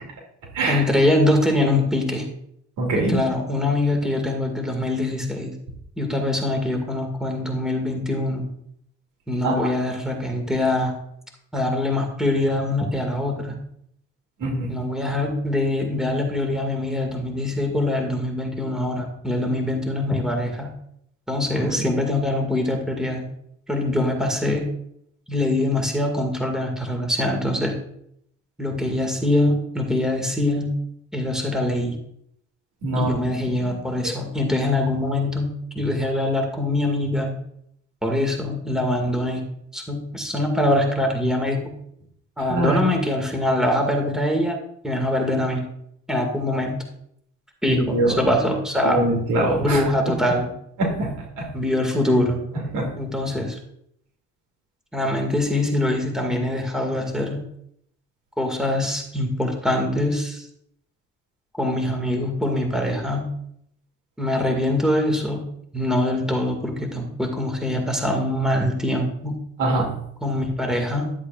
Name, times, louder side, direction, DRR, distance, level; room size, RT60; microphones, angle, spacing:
voice 1, 0.7-2.3 3.1-5.5 6.0-8.5 9.3-10.9 11.5-13.6 14.7-20.7 21.3-23.2 23.7-24.7 25.3-27.8 28.6-30.8 31.1-32.0 33.0-37.4 38.0-39.4 39.7-41.7 42.4-44.6 44.8-45.7 46.1-46.8 47.6-49.0 49.6-50.5 51.5-52.4 53.0-53.6 54.9-57.4 58.4-60.5 61.6-63.3 64.2-65.4 65.7-69.4 70.2-71.1, left 1 dB, ahead, 2 dB, 2.1 m, -23 dB
voice 2, 2.8-3.2 9.4-9.6 14.4-14.7 21.5-21.9 32.8-33.2 33.6-33.8 34.0-34.1 42.4-42.8 47.7-48.2 48.8-49.8 50.8-51.5 52.7-52.9 62.8-62.9 69.6-69.9, right 2 dB, 90° right, -1 dB, 2.7 m, -23 dB
12.0 x 8.0 x 2.5 m, 0.73 s
cardioid pair, 90°, 30 cm